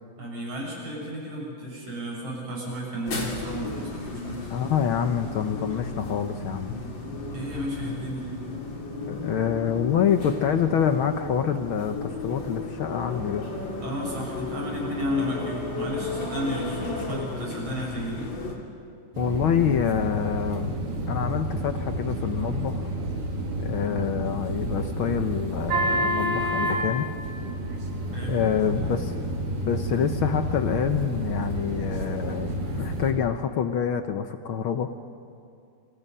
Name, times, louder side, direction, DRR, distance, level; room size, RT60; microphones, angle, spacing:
voice 1, 0.2-4.4 7.3-8.3 13.8-18.3 28.1-28.4, equal, 55° right, -2 dB, 8.1 m, -33 dB
sound 1, 3.0-18.6, left 3 dB, 40° left, 3.5 m, -34 dB
voice 2, 4.5-6.8 9.1-13.5 19.2-20.8 21.1-22.9 23.6-27.1 28.3-29.1 29.7-34.9, left 8 dB, 70° left, 7 dB, 1.3 m, -26 dB
sound 2, 19.1-33.1, right 1 dB, 85° right, 4.4 m, -29 dB
28.0 x 27.0 x 5.6 m, 2.4 s
omnidirectional pair, 3.3 m